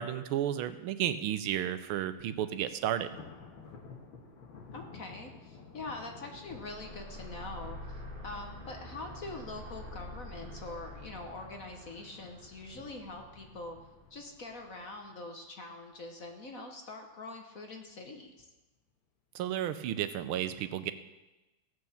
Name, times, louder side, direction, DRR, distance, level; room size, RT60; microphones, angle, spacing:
voice 1, 0.0-3.1 19.3-20.9, right 11 dB, 90° right, 11 dB, 1.6 m, -32 dB
Thunder, 2.5-15.8 16.2-16.5 16.9-17.0 17.9-18.4, left 5 dB, 75° left, 2.4 m, -54 dB
voice 2, 4.7-13.8 14.1-18.5, left 2 dB, 50° left, 3 dB, 1.3 m, -44 dB
sound 1, 6.4-14.7, left 1 dB, 25° right, 2.4 m, -47 dB
16.5 x 6.3 x 7.2 m, 1.1 s
omnidirectional pair, 2.3 m